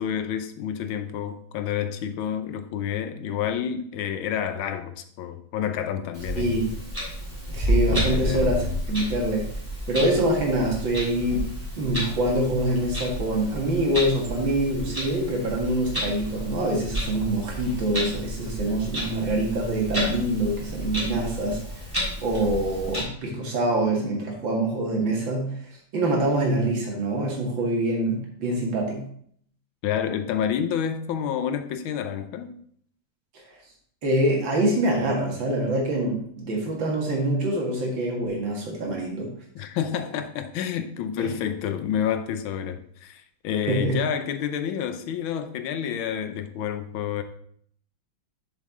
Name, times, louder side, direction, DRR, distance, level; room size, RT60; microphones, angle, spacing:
voice 1, 0.0-6.6 7.9-8.7 29.8-32.6 39.5-47.2, left 9 dB, 90° left, 1.5 m, -29 dB
Clock, 6.1-23.0, equal, 10° right, 3.0 m, -31 dB
voice 2, 6.4-6.7 7.5-9.4 9.9-11.5 11.8-21.6 22.2-25.5 25.9-29.1 34.0-39.3 41.2-41.3 43.7-44.0, right 1 dB, 70° right, 2.6 m, -25 dB
7.1 x 6.6 x 3.8 m
omnidirectional pair, 2.1 m